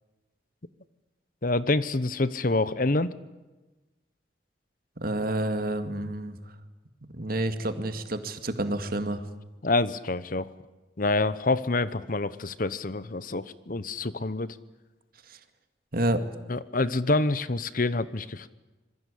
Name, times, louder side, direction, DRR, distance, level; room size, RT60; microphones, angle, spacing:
voice 1, 1.4-3.1 9.6-10.5 11.0-14.5 16.5-18.5, left 2 dB, 50° left, 16 dB, 1.0 m, -27 dB
voice 2, 5.0-6.4 7.1-9.2 15.3-15.4 15.9-16.2, right 1 dB, 55° right, 9 dB, 2.2 m, -29 dB
26.5 x 22.0 x 8.5 m, 1.1 s
head